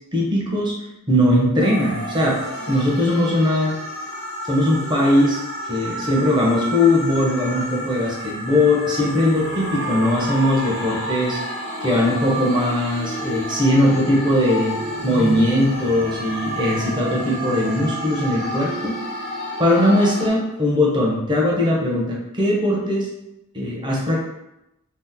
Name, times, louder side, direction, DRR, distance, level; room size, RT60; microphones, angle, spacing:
voice 1, 0.1-0.7 1.1-2.4 2.7-3.8 4.5-5.4 5.7-11.4 11.8-18.9 19.6-23.1 23.5-24.2, left 1 dB, 20° right, -4 dB, 0.7 m, -20 dB
sound 1, 1.6-20.3, right 1 dB, 70° left, 1.2 m, -30 dB
2.8 x 2.0 x 3.5 m, 0.88 s
head